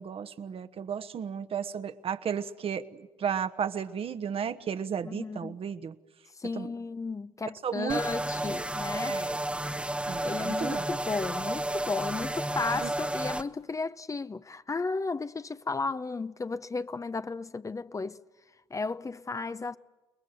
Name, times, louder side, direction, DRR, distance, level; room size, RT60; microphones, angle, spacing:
voice 1, 0.0-6.0 6.5-6.7 7.6-8.0 9.0-9.4 10.1-10.8 12.7-12.9, right 7 dB, 50° right, 1.3 m, -34 dB
voice 2, 5.0-5.6 6.3-9.2 10.2-18.2 18.7-19.8, left 4 dB, 25° left, 0.7 m, -34 dB
sound 1, 7.9-13.4, right 1 dB, 10° right, 1.2 m, -32 dB
30.0 x 20.5 x 7.9 m
hypercardioid pair, 55°, 12 cm